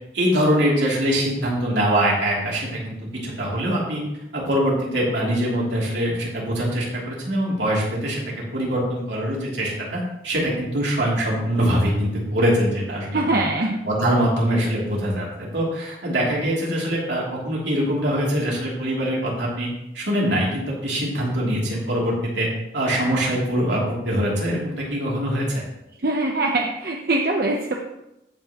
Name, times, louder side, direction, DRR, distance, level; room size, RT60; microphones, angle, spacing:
voice 1, 0.1-3.0 3.2-4.0 4.3-13.4 13.8-19.7 19.9-22.5 22.7-23.8 24.0-25.6, equal, 80° right, -4 dB, 2.8 m, -23 dB
voice 2, 13.1-13.8 26.0-27.8, right 2 dB, 55° right, 1 dB, 0.8 m, -22 dB
14.5 x 5.7 x 3.0 m, 0.89 s
head